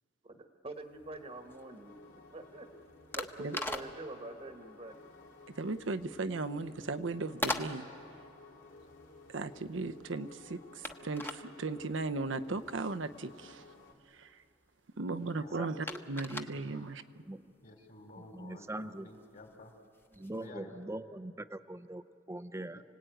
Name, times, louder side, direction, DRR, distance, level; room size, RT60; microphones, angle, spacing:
voice 1, 0.2-2.0 2.3-2.7 3.2-5.0, right 2 dB, 30° right, 5 dB, 1.2 m, -45 dB
sound 1, 0.7-20.5, left 1 dB, 10° left, 1.0 m, -44 dB
sound 2, 0.9-13.9, left 3 dB, 80° left, 3.2 m, -56 dB
voice 2, 5.6-7.9 9.3-13.6 14.1-14.4 15.0-17.0, right 3 dB, 70° right, 9 dB, 0.8 m, -37 dB
voice 3, 15.6-16.0 17.3-17.5 18.2-19.1 20.1-22.8, right 1 dB, 15° right, 13 dB, 0.6 m, -42 dB
voice 4, 16.3-16.9 17.6-19.7 20.3-20.8 22.7-22.8, left 2 dB, 45° left, 4 dB, 3.1 m, -53 dB
29.5 x 19.0 x 9.0 m, 2.5 s
head